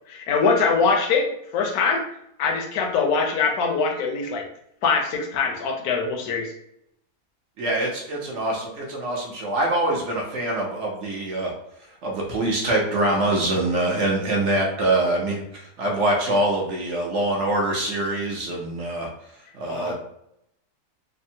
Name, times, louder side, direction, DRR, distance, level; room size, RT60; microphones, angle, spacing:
voice 1, 0.1-1.3 1.5-2.0 2.4-4.4 4.8-6.5 19.7-19.9, left 5 dB, 75° left, 2 dB, 1.1 m, -22 dB
voice 2, 7.6-11.5 12.0-19.1 19.5-19.9, right 1 dB, 60° right, -2 dB, 0.9 m, -24 dB
3.4 x 2.1 x 2.7 m, 0.76 s
omnidirectional pair, 1.6 m